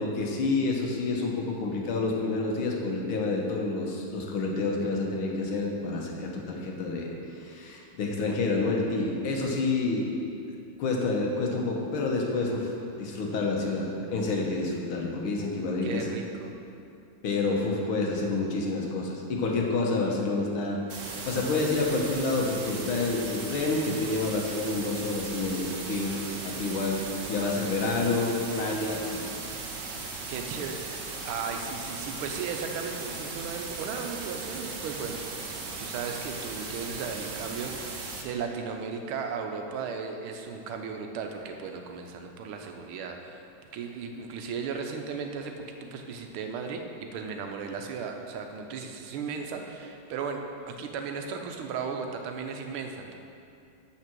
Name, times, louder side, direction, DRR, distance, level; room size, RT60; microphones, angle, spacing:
voice 1, 0.0-10.2 10.8-12.7 13.0-16.1 17.2-20.8 21.2-27.0 27.3-29.3, left 3 dB, 80° left, -1 dB, 2.0 m, -28 dB
voice 2, 15.8-16.5 30.3-35.2 35.8-53.2, right 5 dB, 85° right, 4 dB, 1.6 m, -36 dB
sound 1, 20.9-38.2, right 3 dB, 55° right, 0.9 m, -38 dB
7.4 x 5.8 x 6.1 m, 2.6 s
omnidirectional pair, 2.3 m